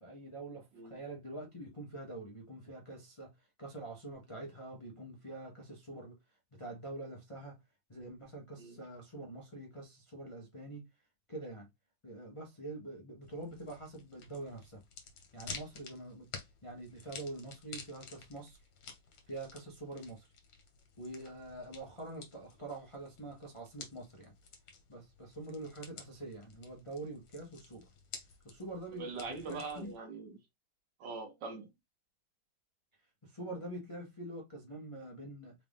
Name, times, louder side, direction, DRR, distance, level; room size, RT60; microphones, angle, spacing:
voice 1, 0.0-6.2 6.5-7.6 7.9-10.8 11.3-11.7 12.0-14.8 15.3-16.3 16.6-18.6 19.3-20.3 21.0-24.3 24.9-27.9 28.4-29.9 33.2-35.5, right 2 dB, 30° left, 0.5 m, -45 dB
sound 1, 13.2-30.0, left 5 dB, 70° left, 1.8 m, -52 dB
voice 2, 29.0-30.4 31.0-31.7, right 4 dB, 65° right, 1.6 m, -42 dB
4.2 x 2.5 x 3.5 m
omnidirectional pair, 2.1 m